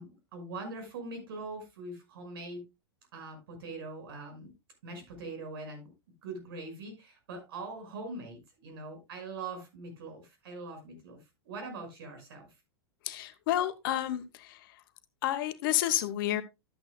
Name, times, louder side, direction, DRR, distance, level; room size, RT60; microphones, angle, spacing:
voice 1, 0.0-2.6 3.1-4.5 4.8-5.9 6.2-11.2 11.4-12.5, right 3 dB, 65° right, 5.8 m, -42 dB
voice 2, 13.1-14.2 15.2-16.4, left 13 dB, 55° left, 1.2 m, -29 dB
12.5 x 9.0 x 2.3 m
figure-of-eight pair, 100°, 14 cm